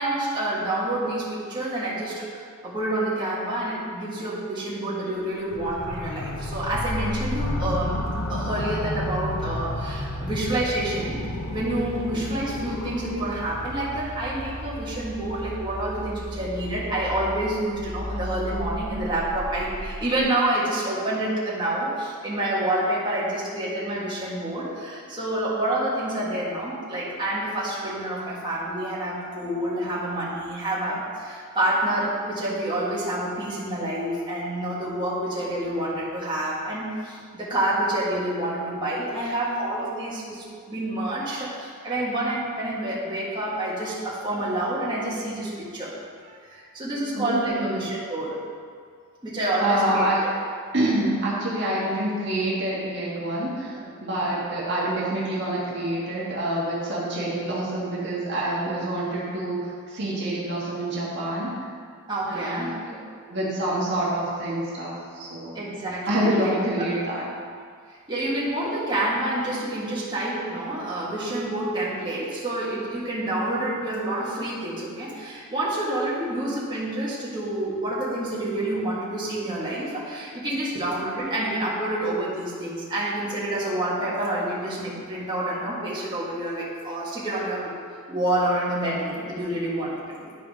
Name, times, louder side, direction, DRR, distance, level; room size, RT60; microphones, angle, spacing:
voice 1, 0.0-11.2 11.5-45.9 46.2-48.4 49.2-50.1 53.8-53.9 62.1-63.0 65.5-66.5 67.9-87.7 88.1-90.3, right 1 dB, 20° right, -8 dB, 1.7 m, -28 dB
sound 1, 5.5-16.0, left 3 dB, 65° left, 0.7 m, -34 dB
sound 2, 5.5-20.2, right 1 dB, 65° right, 1.0 m, -35 dB
voice 2, 47.1-47.9 49.6-50.3 50.7-61.7 62.3-62.9 63.3-65.6 66.1-67.3, right 1 dB, 50° right, -6 dB, 1.5 m, -27 dB
11.5 x 4.9 x 3.6 m, 2.1 s
head